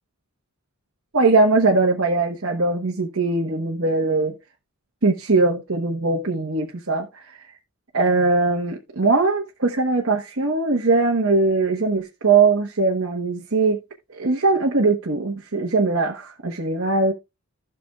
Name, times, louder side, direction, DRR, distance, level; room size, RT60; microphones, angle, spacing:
voice 1, 1.1-4.3 5.0-7.6 7.9-13.8 14.1-17.1, right 3 dB, 65° right, 1.2 m, -21 dB
15.5 x 6.0 x 2.4 m
head